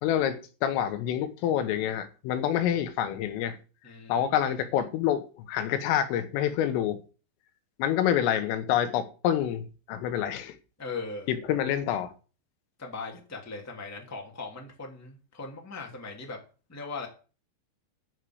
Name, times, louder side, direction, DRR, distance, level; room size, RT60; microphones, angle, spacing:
voice 1, 0.0-3.6 4.1-7.0 7.8-10.6 11.3-12.1, left 10 dB, 85° left, 3.8 m, -27 dB
voice 2, 3.8-4.2 10.8-11.3 12.8-16.4 16.7-17.1, left 3 dB, 5° left, 1.3 m, -39 dB
10.5 x 6.6 x 8.0 m
omnidirectional pair, 5.7 m